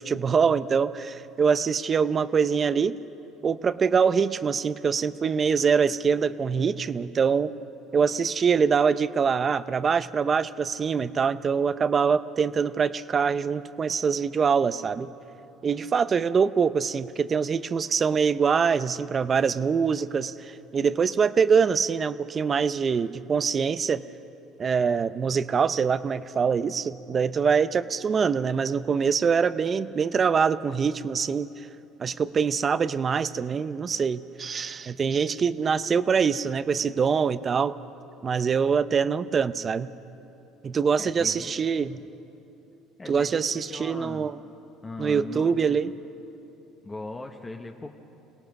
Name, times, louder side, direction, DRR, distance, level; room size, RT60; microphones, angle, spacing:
voice 1, 0.0-3.0 3.4-7.5 7.9-15.1 15.6-24.0 24.6-31.5 32.0-37.8 38.2-39.9 40.6-42.0 43.1-44.4 45.0-45.9, right 6 dB, 35° right, 0.6 m, -24 dB
voice 2, 41.0-42.1 43.0-44.3 44.8-45.9 46.8-48.0, left 2 dB, 20° left, 1.1 m, -39 dB
26.0 x 18.0 x 6.0 m
supercardioid pair, 105°, 0 cm